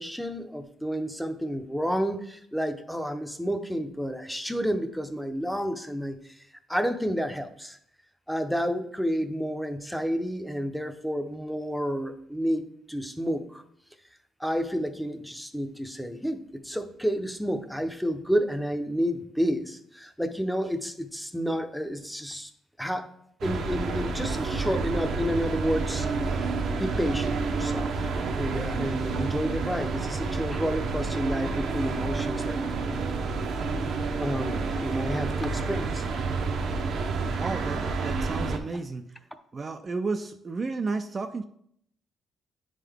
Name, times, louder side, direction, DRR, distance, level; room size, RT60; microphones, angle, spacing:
voice 1, 0.0-6.4 6.7-7.8 8.3-13.6 14.4-22.5 22.8-23.1 23.4-26.1 26.8-28.1 28.3-32.6 34.2-36.2, equal, ahead, 8 dB, 0.7 m, -30 dB
sound 1, 23.4-38.6, right 4 dB, 65° right, 0.7 m, -29 dB
voice 2, 37.3-39.2 39.5-41.4, right 3 dB, 35° right, 7 dB, 0.4 m, -32 dB
9.3 x 3.7 x 3.5 m, 0.69 s
cardioid pair, 90°, 0 cm